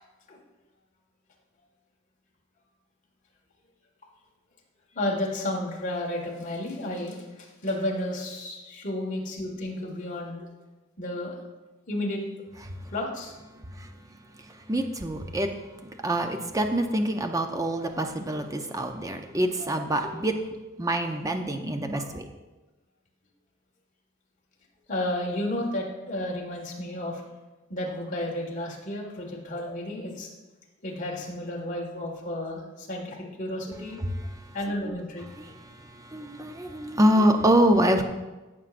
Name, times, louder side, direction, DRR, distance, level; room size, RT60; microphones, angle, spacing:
voice 1, 4.9-10.4 11.0-11.4 11.9-12.2 12.9-13.3 20.0-20.2 24.9-27.2 27.7-30.3 30.8-34.0 34.5-35.2, left 1 dB, 40° left, -2 dB, 1.7 m, -32 dB
voice 2, 14.4-15.5 15.8-20.3 20.8-22.3 33.7-34.6 34.8-34.9 35.4-38.0, right 1 dB, 15° right, 5 dB, 0.6 m, -26 dB
15.0 x 6.1 x 2.5 m, 1.1 s
head